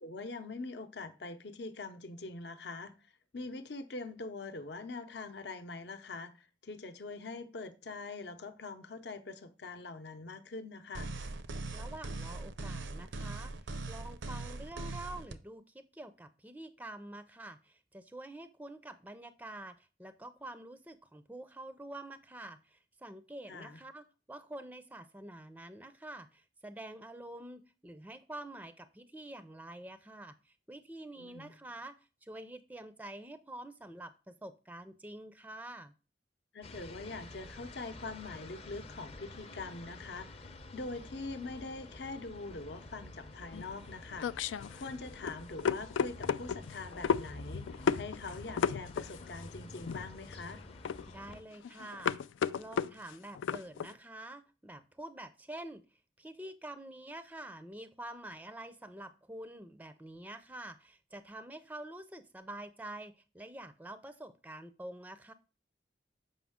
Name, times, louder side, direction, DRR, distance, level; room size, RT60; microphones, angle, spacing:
voice 1, 0.0-2.9 3.3-11.1 23.5-23.8 31.2-31.5 36.5-44.4 44.7-50.6, left 3 dB, 65° left, 0.7 m, -43 dB
sound 1, 10.9-15.3, right 2 dB, 80° right, 0.6 m, -40 dB
voice 2, 11.7-35.9 51.0-52.2 52.6-55.8 56.2-65.3, right 1 dB, 10° right, 0.4 m, -47 dB
sound 2, 36.6-51.4, left 2 dB, 35° left, 0.6 m, -49 dB
sound 3, 43.5-53.9, left 6 dB, 90° left, 0.3 m, -34 dB
7.2 x 5.4 x 3.5 m
head